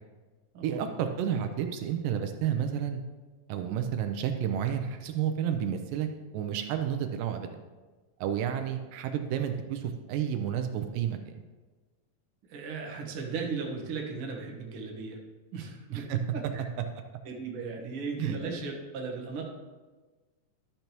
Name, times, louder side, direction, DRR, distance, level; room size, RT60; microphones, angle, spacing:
voice 1, 0.6-3.0 3.5-6.1 6.3-7.5 8.2-11.3 15.9-16.2 18.2-18.4, right 9 dB, 80° right, 6 dB, 2.2 m, -31 dB
voice 2, 12.5-15.2 15.5-16.1 16.3-16.6 17.2-19.4, right 4 dB, 60° right, -1 dB, 1.5 m, -36 dB
12.0 x 6.7 x 3.0 m, 1.3 s
omnidirectional pair, 4.0 m